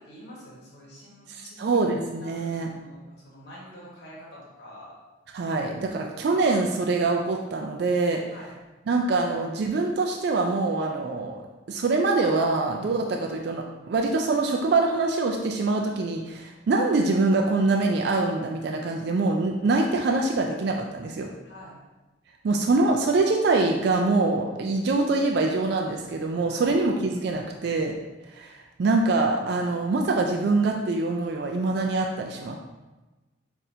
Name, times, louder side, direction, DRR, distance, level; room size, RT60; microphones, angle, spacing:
voice 1, 0.0-1.9 2.2-4.9 8.3-8.5 21.4-21.7 26.5-26.7, equal, 55° left, -6 dB, 1.3 m, -46 dB
voice 2, 1.3-2.7 5.3-8.2 8.9-11.4 11.7-21.3 22.4-27.9 28.3-28.5 28.8-32.6, right 3 dB, 55° right, 1 dB, 0.3 m, -24 dB
5.9 x 2.6 x 2.7 m, 1.1 s
head